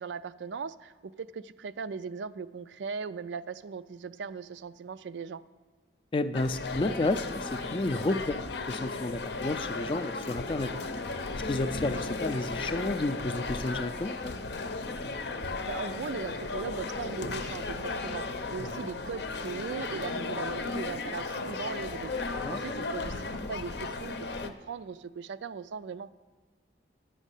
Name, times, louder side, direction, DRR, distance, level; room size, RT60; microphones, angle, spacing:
voice 1, 0.0-5.4 15.7-22.1 22.5-26.1, right 5 dB, 75° right, 14 dB, 0.4 m, -39 dB
voice 2, 6.1-10.8 11.3-14.3 18.6-18.8 22.4-22.6, left 2 dB, 30° left, 12 dB, 0.4 m, -31 dB
sound 1, 6.3-24.5, left 3 dB, 65° left, 0.6 m, -35 dB
9.9 x 6.3 x 8.2 m, 1.5 s
head